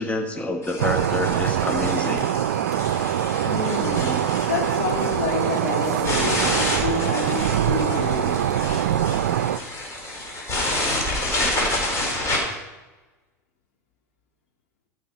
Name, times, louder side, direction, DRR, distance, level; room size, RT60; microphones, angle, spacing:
voice 1, 0.0-2.3, left 2 dB, 15° left, 1.3 m, -27 dB
sound 1, 0.6-12.4, left 1 dB, 35° left, 4.1 m, -29 dB
sound 2, 0.8-9.6, right 11 dB, 85° right, 0.4 m, -23 dB
voice 2, 3.4-8.5, left 5 dB, 70° left, 2.4 m, -29 dB
13.5 x 6.3 x 5.2 m
hypercardioid pair, 90°, 9 cm